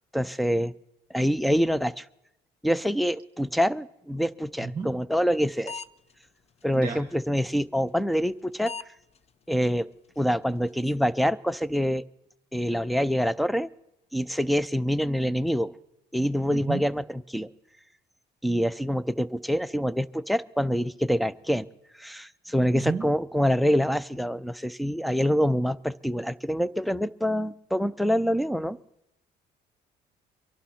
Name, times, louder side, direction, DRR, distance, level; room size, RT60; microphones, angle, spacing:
voice 1, 0.1-0.7 1.1-2.1 2.6-5.8 6.6-8.7 9.5-9.9 10.2-12.0 12.5-13.7 14.1-15.7 16.1-17.5 18.4-21.7 22.0-28.8, equal, ahead, 19 dB, 0.5 m, -26 dB
sound 1, 5.3-5.4 5.7-6.1 6.6-6.7 8.1-8.3 8.6-8.8 9.1-9.2 9.7-9.8 10.2-10.3 10.5-10.9, left 4 dB, 40° left, 0.6 m, -38 dB
voice 2, 16.5-16.8 22.7-23.1, right 5 dB, 25° right, 8 dB, 1.3 m, -31 dB
24.0 x 12.0 x 4.3 m, 0.85 s
cardioid pair, 110°, 17 cm